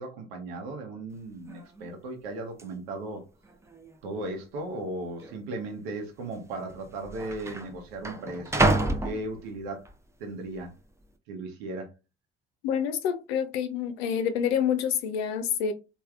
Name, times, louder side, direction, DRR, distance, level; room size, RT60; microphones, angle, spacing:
voice 1, 0.0-3.2 4.0-9.8 10.2-10.7 11.3-11.9, right 2 dB, 75° right, 0.8 m, -36 dB
sound 1, 1.1-1.2 1.5-1.9 2.6-2.7 3.4-4.0 4.2-4.3 5.2-5.4 6.4-6.5 6.7-9.9 10.4-10.8, right 2 dB, 10° right, 0.5 m, -29 dB
voice 2, 12.6-15.7, left 8 dB, 75° left, 0.5 m, -27 dB
3.3 x 2.3 x 2.3 m
hypercardioid pair, 55°, 31 cm